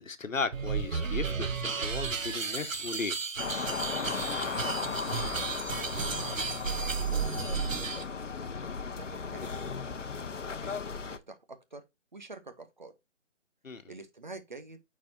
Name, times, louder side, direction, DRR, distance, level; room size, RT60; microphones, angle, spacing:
voice 1, 0.0-3.2 13.6-13.8, left 4 dB, 90° left, 1.3 m, -36 dB
sound 1, 0.5-8.0, right 5 dB, 85° right, 1.1 m, -33 dB
sound 2, 3.4-11.2, left 5 dB, 70° left, 0.9 m, -36 dB
voice 2, 4.7-5.0 5.5-7.3 7.7-8.1 8.5-9.6 10.2-10.8 11.1-11.8 12.1-12.9 13.7-14.8, right 3 dB, 35° right, 0.9 m, -48 dB
8.8 x 4.2 x 2.7 m
figure-of-eight pair, 170°, 38 cm